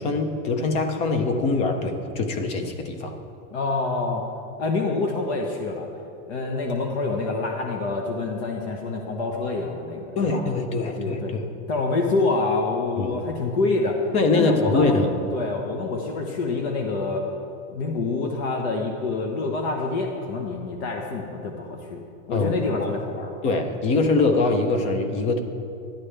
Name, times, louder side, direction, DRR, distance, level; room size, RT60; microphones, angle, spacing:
voice 1, 0.0-3.2 10.2-11.4 13.0-13.2 14.1-15.2 22.3-22.9 23.4-25.4, left 3 dB, 20° left, 7 dB, 0.4 m, -23 dB
voice 2, 3.5-4.2 4.6-5.9 6.3-10.4 10.8-11.3 11.7-14.0 14.3-15.0 15.3-17.3 17.7-23.3, left 3 dB, 60° left, 2 dB, 1.1 m, -26 dB
12.0 x 9.9 x 3.3 m, 2.5 s
supercardioid pair, 165°, 37 cm